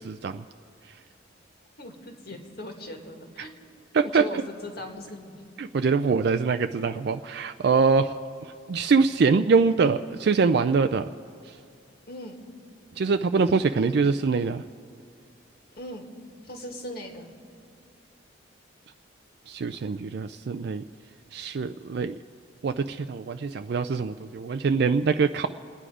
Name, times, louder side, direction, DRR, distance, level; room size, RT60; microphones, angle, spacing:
voice 1, 0.0-0.4 3.9-4.2 5.6-8.1 8.7-11.0 13.0-14.6 19.5-20.8 21.3-22.1 22.6-25.5, right 4 dB, 60° right, 8 dB, 0.4 m, -23 dB
voice 2, 1.8-3.5 4.0-5.4 12.1-12.4 15.8-16.1 16.4-17.3, left 1 dB, 55° left, 3 dB, 1.9 m, -39 dB
28.5 x 9.9 x 4.9 m, 2.3 s
head